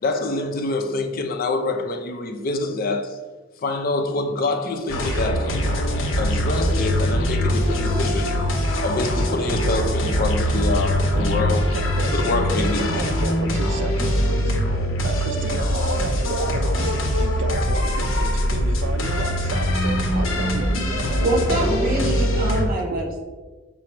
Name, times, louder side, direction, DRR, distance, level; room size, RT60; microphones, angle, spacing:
voice 1, 0.0-3.2 3.6-5.7 6.2-8.4 8.8-11.7 12.1-13.0, left 2 dB, 50° left, 0.4 m, -26 dB
sound 1, 4.9-22.7, equal, 90° left, 0.7 m, -22 dB
voice 2, 11.7-14.6 15.0-21.5 22.9-23.0, right 3 dB, 65° right, 0.4 m, -33 dB
voice 3, 21.2-23.2, right 1 dB, 50° right, 0.9 m, -24 dB
4.8 x 2.0 x 4.4 m
head